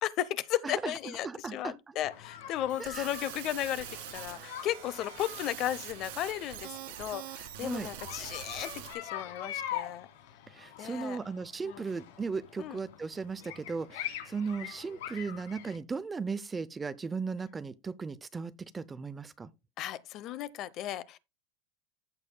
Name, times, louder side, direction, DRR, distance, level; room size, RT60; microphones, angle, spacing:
voice 1, 0.0-10.1 10.8-11.2 11.6-11.9 12.6-12.8 19.8-21.2, left 12 dB, 40° left, 0.8 m, -35 dB
voice 2, 1.2-1.7 2.8-3.1 7.6-7.9 10.5-19.5, right 4 dB, 15° right, 0.5 m, -36 dB
sound 1, 2.0-15.8, left 11 dB, 85° left, 3.5 m, -44 dB
sound 2, 2.7-8.9, right 14 dB, 70° right, 1.9 m, -44 dB
14.5 x 7.2 x 2.2 m
supercardioid pair, 155°, 0 cm